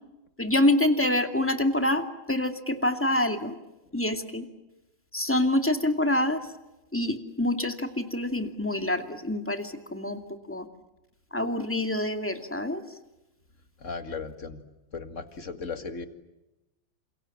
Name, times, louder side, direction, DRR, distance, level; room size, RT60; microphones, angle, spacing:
voice 1, 0.4-3.6 3.9-4.5 5.1-6.5 6.9-10.2 10.5-10.7 11.3-12.8, left 1 dB, 5° left, 6 dB, 2.3 m, -26 dB
voice 2, 13.8-14.6 14.9-16.1, left 4 dB, 40° left, 9 dB, 2.3 m, -36 dB
29.0 x 27.5 x 7.3 m, 0.98 s
omnidirectional pair, 2.1 m